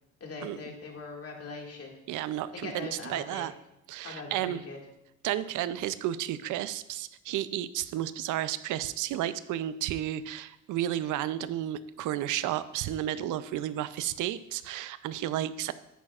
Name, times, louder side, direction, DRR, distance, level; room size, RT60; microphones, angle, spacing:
voice 1, 0.2-2.0 2.5-3.5 4.0-4.8, left 3 dB, 50° left, 0 dB, 2.0 m, -41 dB
voice 2, 2.1-3.5 3.9-4.6 5.2-15.7, right 12 dB, 80° right, 15 dB, 0.5 m, -32 dB
10.5 x 8.5 x 2.4 m, 0.88 s
cardioid pair, 90°, 30 cm